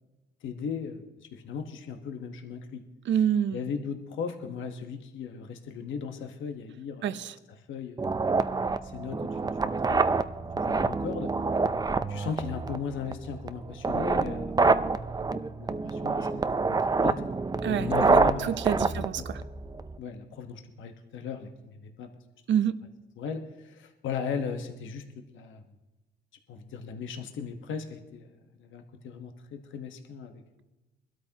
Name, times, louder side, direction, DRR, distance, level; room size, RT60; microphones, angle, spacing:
voice 1, 0.4-2.8 3.5-7.1 7.7-8.0 8.8-10.0 10.4-11.3 12.1-16.5 17.0-17.2 17.7-18.5 18.9-19.2 20.0-22.1 23.2-25.6 26.5-28.3 28.6-30.6, left 6 dB, 75° left, 5 dB, 1.2 m, -37 dB
voice 2, 3.0-3.6 7.0-7.3 17.6-17.9 18.4-19.4 22.5-22.8, right 9 dB, 65° right, 13 dB, 0.7 m, -27 dB
sound 1, 8.0-20.0, right 4 dB, 20° right, 0.5 m, -27 dB
22.0 x 12.5 x 2.9 m, 1.1 s
cardioid pair, 90°, 20 cm